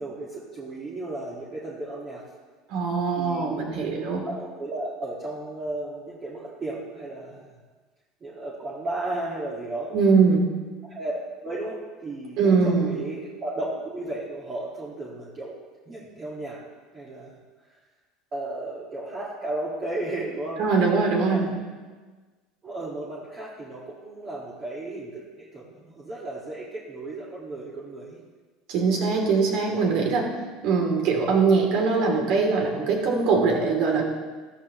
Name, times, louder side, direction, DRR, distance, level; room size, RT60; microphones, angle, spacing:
voice 1, 0.0-2.2 3.2-3.6 4.2-7.5 8.2-9.9 10.8-15.5 15.9-16.6 16.9-17.3 18.3-20.6 21.2-21.5 22.6-28.2, right 2 dB, 25° right, -5 dB, 2.0 m, -34 dB
voice 2, 2.7-4.2 9.9-10.4 12.4-12.9 20.6-21.5 28.7-30.3 30.6-34.1, right 4 dB, 65° right, 1 dB, 3.1 m, -22 dB
13.5 x 13.5 x 3.2 m, 1.4 s
supercardioid pair, 130°, 0 cm